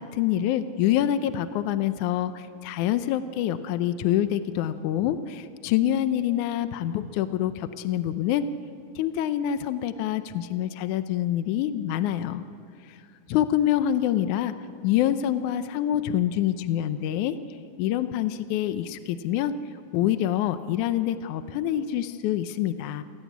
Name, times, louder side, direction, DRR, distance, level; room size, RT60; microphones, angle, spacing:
voice 1, 0.0-8.5 9.0-12.5 13.3-14.5 14.8-17.4 17.8-19.5 19.9-23.0, left 11 dB, 75° left, 11 dB, 2.1 m, -26 dB
27.0 x 17.5 x 8.3 m, 2.6 s
omnidirectional pair, 3.7 m